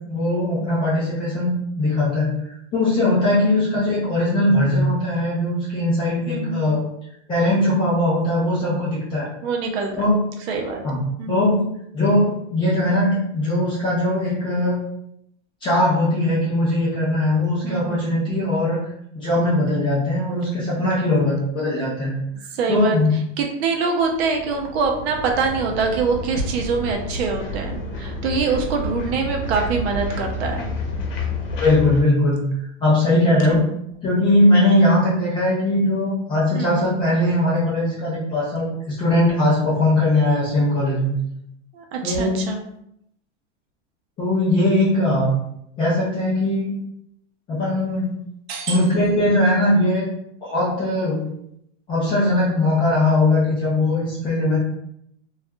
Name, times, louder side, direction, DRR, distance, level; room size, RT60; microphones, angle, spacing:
voice 1, 0.1-2.4 2.7-6.8 7.3-9.3 9.9-10.2 10.8-11.0 11.3-11.6 11.9-14.8 15.6-18.8 19.1-22.2 22.7-23.1 31.5-32.4 32.8-33.6 34.0-41.1 42.0-42.4 44.2-45.4 45.8-46.8 47.5-48.1 48.7-50.1 50.4-51.3 51.9-54.6, left 1 dB, 15° left, -8 dB, 0.3 m, -20 dB
voice 2, 6.3-6.7 9.4-10.2 10.5-11.5 17.6-18.2 22.5-23.0 23.4-30.7 33.3-33.6 36.5-36.9 41.7-42.6 48.5-48.8, right 4 dB, 60° right, 2 dB, 0.6 m, -25 dB
sound 1, 24.0-32.0, left 1 dB, 80° left, 0.8 m, -30 dB
2.7 x 2.3 x 2.2 m, 0.74 s
supercardioid pair, 150°, 37 cm